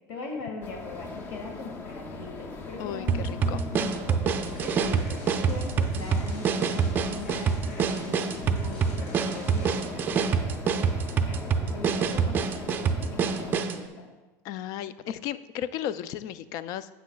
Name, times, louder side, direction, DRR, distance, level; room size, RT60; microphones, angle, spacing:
voice 1, 0.1-11.4 11.7-14.1, left 3 dB, 60° left, 1 dB, 1.8 m, -41 dB
sound 1, 0.6-13.6, left 3 dB, 25° left, 0.7 m, -40 dB
voice 2, 2.8-3.6 14.4-16.9, left 10 dB, 45° left, 15 dB, 0.4 m, -34 dB
sound 2, 3.1-13.8, right 6 dB, 25° right, 0.5 m, -26 dB
sound 3, 4.3-10.1, left 2 dB, 90° left, 3.0 m, -45 dB
12.5 x 8.3 x 2.3 m, 1.2 s
supercardioid pair, 155°, 9 cm